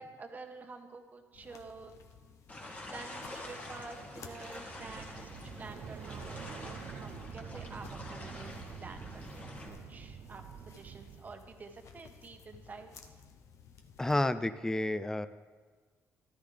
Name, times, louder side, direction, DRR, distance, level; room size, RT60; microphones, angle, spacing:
voice 1, 0.0-2.0 2.9-13.2, right 4 dB, 30° right, 5 dB, 1.2 m, -49 dB
sound 1, 1.3-14.3, left 6 dB, 65° left, 0.8 m, -55 dB
sound 2, 2.5-9.7, left 1 dB, 25° left, 1.9 m, -47 dB
sound 3, 4.5-11.5, right 8 dB, 60° right, 0.4 m, -47 dB
voice 2, 14.0-15.3, left 1 dB, 10° left, 13 dB, 0.4 m, -30 dB
13.5 x 13.5 x 3.4 m, 1.4 s
cardioid pair, 120°, 6 cm